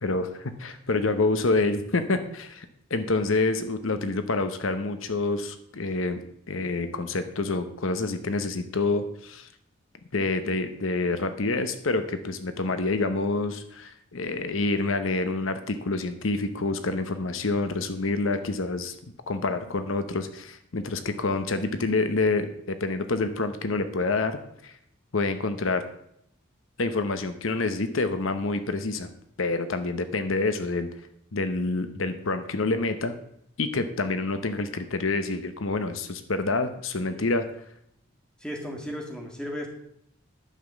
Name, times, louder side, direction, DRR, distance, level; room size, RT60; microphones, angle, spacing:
voice 1, 0.0-9.5 10.1-18.9 19.3-24.4 24.6-24.7 25.1-25.8 26.8-29.1 29.4-30.9 31.3-33.2 33.6-37.5, left 3 dB, 70° left, 9 dB, 0.9 m, -27 dB
voice 2, 38.4-39.7, equal, 5° left, 1 dB, 1.8 m, -35 dB
11.0 x 6.0 x 7.3 m, 0.72 s
head